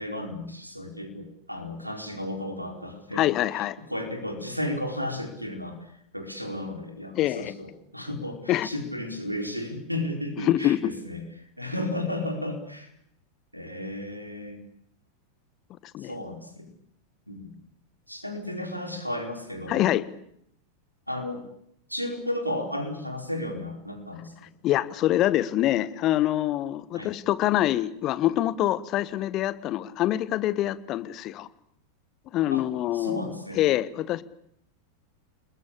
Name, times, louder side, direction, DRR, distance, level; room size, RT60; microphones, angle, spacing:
voice 1, 0.0-3.2 3.9-5.8 6.1-11.2 11.6-12.9 13.5-14.6 16.0-16.7 17.3-17.5 18.1-19.9 21.1-21.4 21.9-24.5 26.9-27.1 32.5-32.6 32.9-33.6, left 1 dB, 90° right, 4 dB, 4.7 m, -33 dB
voice 2, 3.1-3.8 7.1-7.5 8.5-8.7 10.4-10.9 15.9-16.1 19.7-20.0 24.6-31.5 32.3-33.2 33.5-34.2, left 14 dB, 35° left, 16 dB, 1.4 m, -25 dB
29.5 x 21.0 x 8.5 m, 0.73 s
figure-of-eight pair, 90°, 0 cm